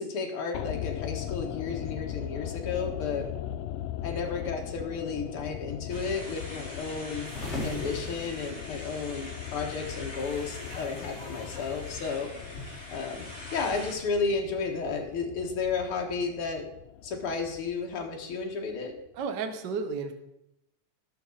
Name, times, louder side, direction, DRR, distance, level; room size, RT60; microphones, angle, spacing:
voice 1, 0.0-3.3 4.0-7.3 7.6-12.3 12.9-16.7 17.0-19.0, left 4 dB, 50° left, 1 dB, 2.1 m, -33 dB
sound 1, 0.5-18.7 19.0-19.1, left 12 dB, 85° left, 1.4 m, -39 dB
sound 2, 5.9-13.9, left 1 dB, ahead, 4.8 m, -44 dB
sound 3, 7.2-12.8, left 1 dB, 20° left, 3.0 m, -42 dB
voice 2, 19.2-20.1, right 5 dB, 75° right, 7 dB, 1.0 m, -32 dB
19.0 x 6.5 x 4.0 m, 0.83 s
omnidirectional pair, 3.6 m